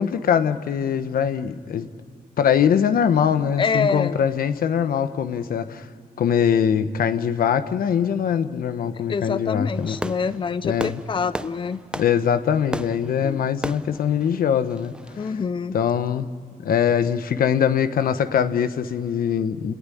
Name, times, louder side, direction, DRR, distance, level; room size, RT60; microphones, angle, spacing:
voice 1, 0.0-1.9 2.4-5.9 6.2-10.0 10.6-11.0 11.9-15.4 15.7-16.3 16.6-19.7, left 8 dB, 75° left, 11 dB, 1.1 m, -22 dB
voice 2, 3.6-4.2 9.1-11.8 13.2-13.4 15.2-15.7, left 5 dB, 35° left, 14 dB, 0.6 m, -26 dB
Fireworks, 9.7-15.3, right 1 dB, 5° right, 0.7 m, -35 dB
30.0 x 18.5 x 10.0 m, 2.3 s
cardioid pair, 100°, 15 cm